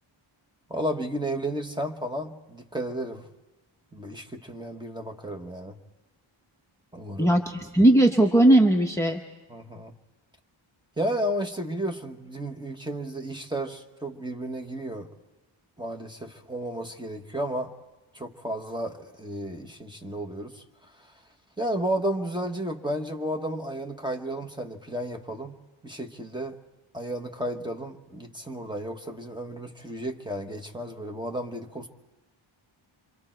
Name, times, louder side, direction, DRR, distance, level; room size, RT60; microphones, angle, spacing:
voice 1, 0.7-3.3 3.9-5.8 6.9-7.3 9.5-9.9 11.0-15.1 15.8-17.7 18.1-20.6 21.6-25.6 25.8-26.6 26.9-31.9, right 1 dB, 10° right, 1.1 m, -33 dB
voice 2, 7.2-9.2, right 1 dB, 5° left, 0.8 m, -18 dB
27.5 x 25.0 x 4.4 m
wide cardioid pair, 145°, 49 cm